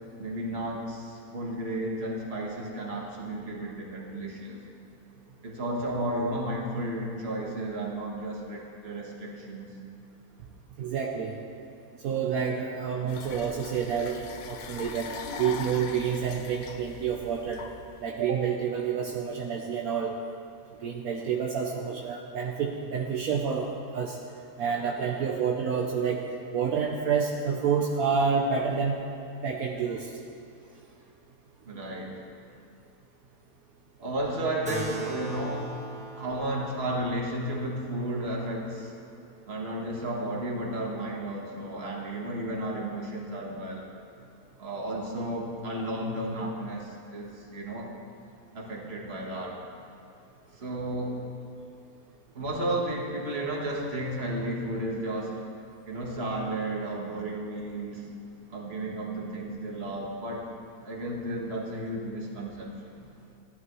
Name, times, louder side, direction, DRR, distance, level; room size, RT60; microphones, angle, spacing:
voice 1, 0.2-4.6 5.4-9.7 31.7-32.2 34.0-35.7 36.2-38.9 39.5-43.9 44.6-47.9 48.5-49.6 50.5-51.2 52.3-55.4 55.9-58.1 58.5-60.5 60.8-63.0, right 1 dB, 45° right, -2 dB, 1.7 m, -33 dB
voice 2, 10.8-11.4 12.0-15.1 15.4-17.7 18.0-20.2 20.8-24.2 24.6-26.2 26.5-29.0 29.4-30.2, right 6 dB, 75° right, 0 dB, 1.2 m, -28 dB
sound 1, 13.1-18.1, left 5 dB, 70° left, 1.1 m, -41 dB
Keyboard (musical), 34.7-39.5, right 3 dB, 5° right, 1.3 m, -40 dB
16.0 x 11.0 x 3.1 m, 2.6 s
omnidirectional pair, 1.6 m